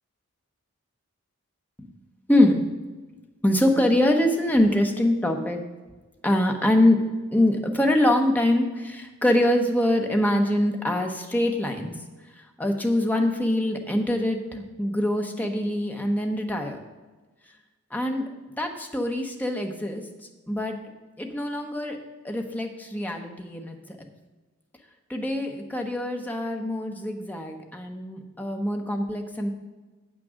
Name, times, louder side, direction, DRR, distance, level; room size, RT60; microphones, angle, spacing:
voice 1, 2.3-2.6 3.4-5.6 6.2-7.0 7.3-12.0 12.3-16.8 17.9-18.3 18.6-20.0 20.5-20.8 21.2-22.0 22.2-24.1 25.1-29.5, left 1 dB, 10° left, 3 dB, 0.9 m, -24 dB
8.2 x 6.2 x 6.3 m, 1.2 s
head